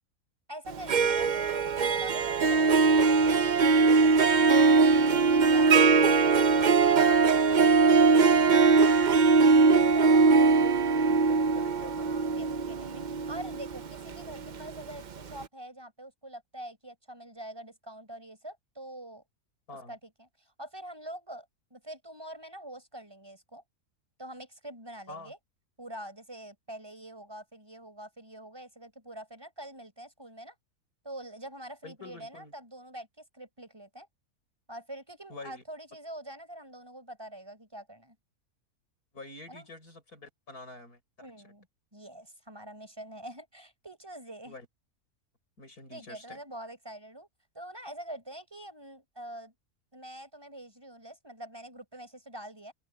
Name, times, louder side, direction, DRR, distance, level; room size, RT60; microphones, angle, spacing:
voice 1, 0.5-3.4 5.3-9.1 9.7-10.5 12.0-19.2 19.9-23.6 24.2-25.4 25.8-30.5 31.0-34.1 34.7-38.2 39.5-39.7 41.2-41.7 41.9-44.6 45.9-47.3 47.5-49.5 49.9-52.7, right 1 dB, 15° right, 6.5 m, -45 dB
Harp, 0.7-14.7, right 4 dB, 45° right, 0.6 m, -21 dB
voice 2, 4.6-5.0 5.8-6.1 10.0-12.1 19.7-20.0 25.1-25.3 31.8-32.5 35.3-35.6 39.1-41.3 44.5-44.7 45.6-46.4, left 3 dB, 85° left, 6.9 m, -47 dB
open air
omnidirectional pair, 1.6 m